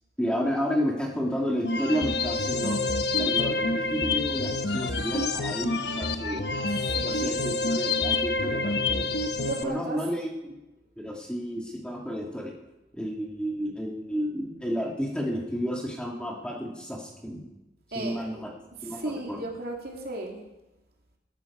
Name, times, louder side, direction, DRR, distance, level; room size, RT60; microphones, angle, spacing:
voice 1, 0.2-2.8 3.2-6.6 7.0-9.1 9.6-10.6 11.0-12.5 12.9-17.4 17.9-18.5 18.8-19.4, equal, 5° left, -1 dB, 1.8 m, -31 dB
sound 1, 1.6-9.6, left 3 dB, 60° left, 1.0 m, -27 dB
voice 2, 6.9-7.3 9.4-10.0 17.9-18.4 18.9-20.4, right 2 dB, 55° right, 0 dB, 2.8 m, -35 dB
18.5 x 13.5 x 4.7 m, 1.0 s
head